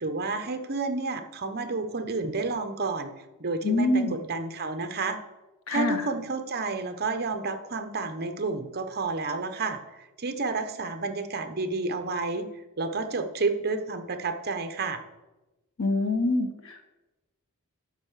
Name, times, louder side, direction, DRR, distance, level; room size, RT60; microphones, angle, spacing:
voice 1, 0.0-3.1 3.4-5.2 5.7-12.5 12.8-15.0, right 3 dB, 45° right, 8 dB, 1.0 m, -30 dB
voice 2, 3.6-4.2 5.7-6.1 15.8-16.9, left 2 dB, 65° left, 5 dB, 1.4 m, -25 dB
10.5 x 6.4 x 6.8 m, 1.1 s
head